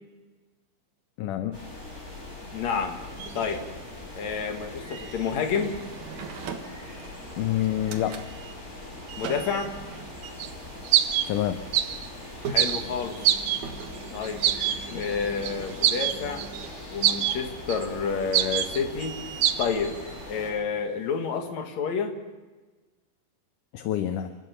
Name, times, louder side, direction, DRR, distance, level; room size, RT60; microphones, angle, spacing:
voice 1, 1.2-1.6 7.4-8.3 11.3-11.6 23.7-24.4, left 11 dB, 75° left, 8 dB, 2.1 m, -27 dB
sound 1, 1.5-20.5, left 2 dB, 15° left, 6.1 m, -41 dB
voice 2, 2.5-3.0 3.3-3.6 4.1-5.8 9.2-9.7 12.5-13.2 14.1-14.4 14.9-16.4 16.9-19.2 19.6-19.9 20.3-22.1, left 6 dB, 55° left, 5 dB, 2.7 m, -29 dB
sound 2, 3.2-21.5, right 6 dB, 60° right, 2.7 m, -43 dB
sound 3, 10.4-10.5 10.8-11.3 11.7-12.1 12.6-12.8 13.2-13.8 14.2-14.8 15.0-15.1 15.4-15.5 15.8-16.7 17.0-17.4 17.7-17.8 18.3-19.0 19.4-19.7, right 11 dB, 80° right, 1.6 m, -24 dB
29.0 x 14.0 x 6.9 m, 1.3 s
omnidirectional pair, 4.3 m